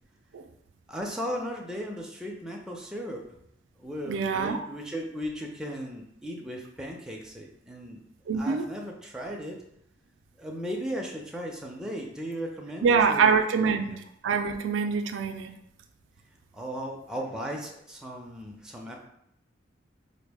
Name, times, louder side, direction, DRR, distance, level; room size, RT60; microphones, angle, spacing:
voice 1, 0.9-3.3 3.8-8.0 8.4-9.6 10.4-14.0 16.5-19.1, equal, 5° right, -1 dB, 0.5 m, -36 dB
voice 2, 4.1-4.6 8.3-8.6 12.8-13.9 14.2-15.5, right 5 dB, 85° right, 6 dB, 0.4 m, -24 dB
4.3 x 2.0 x 3.4 m, 0.77 s
head